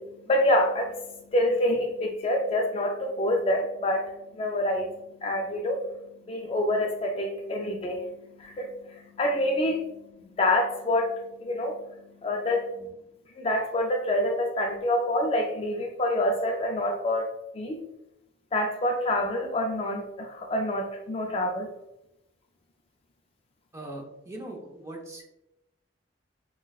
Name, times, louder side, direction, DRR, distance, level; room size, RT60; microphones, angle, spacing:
voice 1, 0.0-12.9 13.4-17.3 17.5-17.8 18.5-21.7, left 1 dB, 30° left, 2 dB, 0.3 m, -27 dB
voice 2, 23.7-25.2, right 1 dB, 15° right, 0 dB, 0.6 m, -40 dB
5.9 x 2.1 x 2.3 m, 0.88 s
head